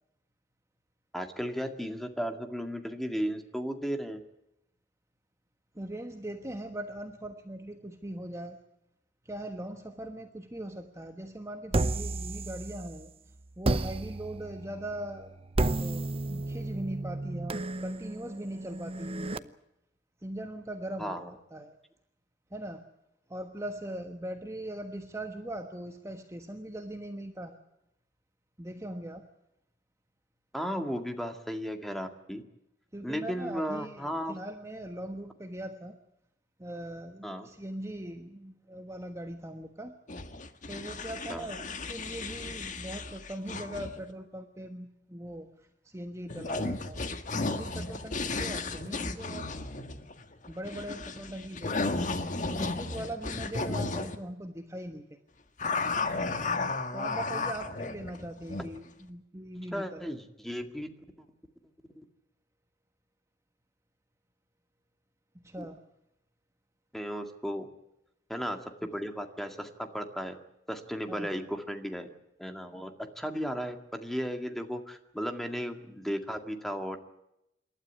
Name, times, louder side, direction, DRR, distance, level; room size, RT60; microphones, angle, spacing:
voice 1, 1.1-4.2 21.0-21.3 30.5-32.4 33.0-34.4 37.2-37.5 41.3-41.5 59.7-60.9 62.0-62.1 65.6-65.7 66.9-67.7 68.3-70.4 70.7-72.1 72.4-77.0, equal, ahead, 5 dB, 2.0 m, -35 dB
voice 2, 5.7-8.6 9.2-13.1 13.6-15.3 15.6-19.5 20.2-21.2 21.5-21.8 22.5-22.8 23.3-27.6 28.6-29.3 32.9-36.0 36.6-39.9 40.7-47.0 47.4-49.5 50.5-52.0 52.4-55.2 56.9-60.1 65.3-65.8 68.8-68.9 71.1-71.4, right 1 dB, 15° right, 5 dB, 1.3 m, -40 dB
sound 1, 11.7-13.1 13.6-19.4, right 2 dB, 35° right, 0.7 m, -32 dB
sound 2, 40.1-44.1 46.3-54.2 55.6-58.8, left 3 dB, 45° left, 1.7 m, -34 dB
27.5 x 12.5 x 9.6 m, 0.84 s
head